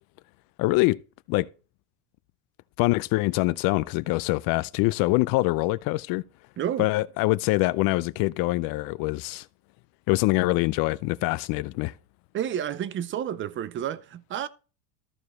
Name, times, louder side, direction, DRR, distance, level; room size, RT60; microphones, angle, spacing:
voice 1, 0.6-1.0 1.3-1.5 2.8-6.2 6.8-9.5 10.1-11.9, left 21 dB, 50° left, 0.4 m, -24 dB
voice 2, 6.6-6.9 12.3-14.5, right 10 dB, 25° right, 0.5 m, -30 dB
14.0 x 4.8 x 4.2 m
supercardioid pair, 130°, 47 cm